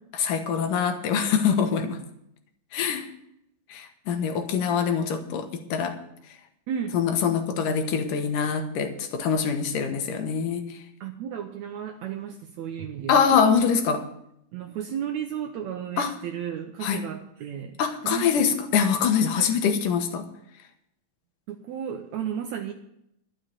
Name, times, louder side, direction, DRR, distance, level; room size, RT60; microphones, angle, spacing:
voice 1, 0.2-2.0 2.7-3.1 3.7-6.0 6.9-10.7 13.1-14.1 16.0-16.1 16.8-17.0 17.8-20.3, left 6 dB, 80° left, 6 dB, 2.8 m, -24 dB
voice 2, 6.7-7.0 9.9-10.0 11.0-13.4 14.5-18.3 19.4-19.5 21.5-22.7, right 9 dB, 75° right, 4 dB, 1.9 m, -34 dB
12.0 x 6.5 x 8.9 m, 0.77 s
omnidirectional pair, 3.7 m